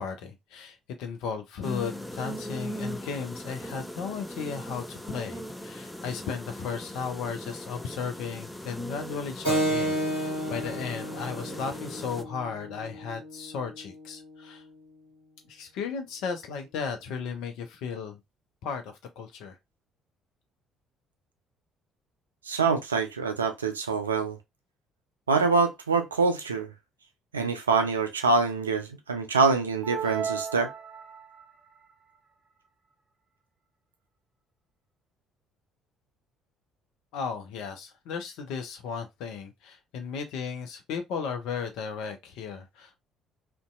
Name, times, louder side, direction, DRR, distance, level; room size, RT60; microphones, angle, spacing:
voice 1, 0.0-14.6 15.5-18.2 18.6-19.6 37.1-43.0, left 6 dB, 65° left, 0.6 m, -35 dB
sound 1, 1.6-12.2, equal, 5° left, 0.4 m, -39 dB
Keyboard (musical), 9.4-14.5, right 1 dB, 85° left, 1.0 m, -32 dB
voice 2, 22.5-24.4 25.3-26.7 27.3-30.7, right 4 dB, 85° right, 0.4 m, -25 dB
sound 2, 29.8-31.5, right 7 dB, 35° right, 0.6 m, -34 dB
2.6 x 2.2 x 2.4 m
figure-of-eight pair, 50°, 0 cm